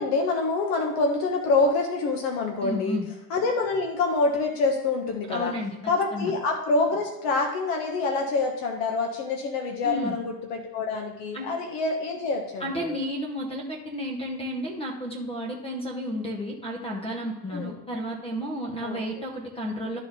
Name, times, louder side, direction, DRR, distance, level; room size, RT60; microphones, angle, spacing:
voice 1, 0.0-3.0 3.3-5.5 5.9-12.9 17.5-17.7 18.8-19.2, left 3 dB, 70° left, 2 dB, 1.5 m, -26 dB
voice 2, 2.6-3.1 5.3-6.3 9.8-10.1 11.3-11.5 12.6-20.0, equal, 10° left, 0 dB, 0.9 m, -32 dB
12.5 x 4.3 x 3.6 m, 0.99 s
cardioid pair, 150°, 48 cm